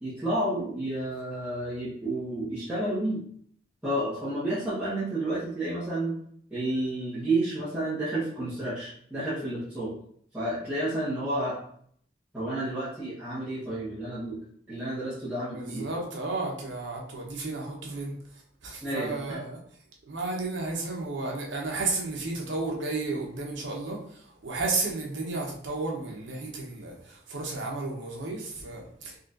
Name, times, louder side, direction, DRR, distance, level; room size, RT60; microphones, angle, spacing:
voice 1, 0.0-3.2 3.8-6.1 6.5-9.9 10.3-11.6 12.3-14.4 14.7-15.9 18.8-19.4, right 1 dB, 10° right, -14 dB, 1.2 m, -30 dB
voice 2, 15.5-18.1 18.6-19.6 20.1-29.1, right 3 dB, 75° right, -1 dB, 0.9 m, -33 dB
4.1 x 2.9 x 2.5 m, 0.64 s
head